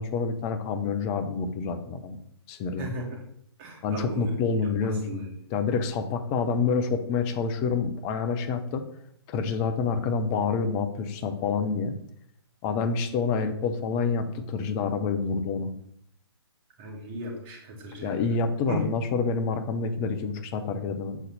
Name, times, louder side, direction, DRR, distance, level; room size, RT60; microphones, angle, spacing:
voice 1, 0.0-2.2 2.5-2.9 3.8-8.8 9.3-11.9 12.6-15.7 18.0-21.2, left 5 dB, 20° left, 8 dB, 0.7 m, -28 dB
voice 2, 2.8-3.2 3.6-4.3 4.6-5.3 16.8-18.4 18.7-18.9, right 1 dB, 25° right, 0 dB, 1.9 m, -36 dB
7.2 x 4.0 x 4.1 m, 0.69 s
figure-of-eight pair, 130°, 14 cm